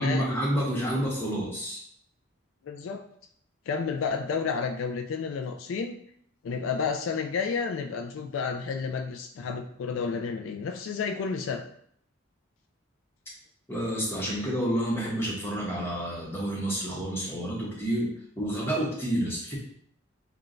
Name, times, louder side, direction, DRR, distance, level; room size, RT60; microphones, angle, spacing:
voice 1, 0.0-1.8 13.7-18.1 18.4-19.6, right 1 dB, 10° left, -4 dB, 1.0 m, -29 dB
voice 2, 2.6-3.0 3.7-6.0 6.4-11.6, left 5 dB, 70° left, 5 dB, 0.3 m, -31 dB
5.6 x 2.2 x 2.5 m, 0.66 s
head